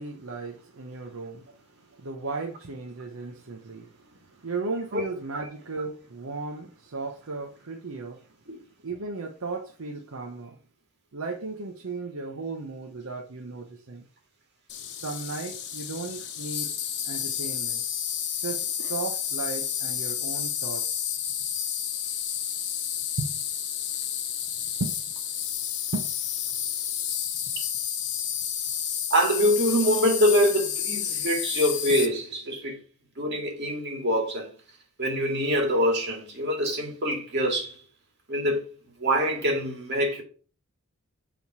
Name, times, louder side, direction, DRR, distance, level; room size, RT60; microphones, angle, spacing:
voice 1, 0.0-8.4 8.8-10.6 11.1-14.1 14.9-16.8 17.0-17.8 18.4-20.9 23.2-23.3 24.8-24.9 25.9-26.1, right 3 dB, 80° right, 0.8 m, -35 dB
Insect, 14.7-32.1, left 9 dB, 55° left, 1.0 m, -31 dB
voice 2, 29.1-32.8 33.2-34.5 35.0-37.7 38.3-38.6 39.0-40.2, equal, 55° right, 2.2 m, -24 dB
7.2 x 3.7 x 4.6 m
head